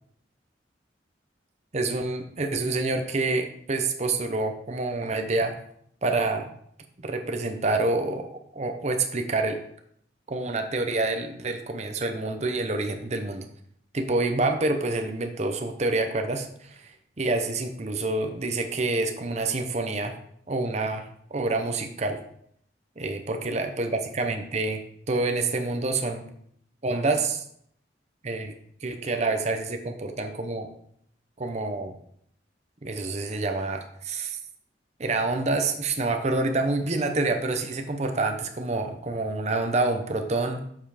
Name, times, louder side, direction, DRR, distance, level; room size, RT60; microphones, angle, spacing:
voice 1, 1.7-5.5 6.0-6.5 7.0-9.6 10.3-13.5 13.9-16.9 17.2-20.1 20.5-21.0 21.3-22.2 23.0-24.8 25.1-26.2 26.8-27.4 28.2-28.5 28.8-30.7 31.4-31.9 32.8-34.4 35.0-40.6, right 2 dB, 40° right, 5 dB, 0.8 m, -27 dB
6.9 x 5.7 x 4.9 m, 0.68 s
head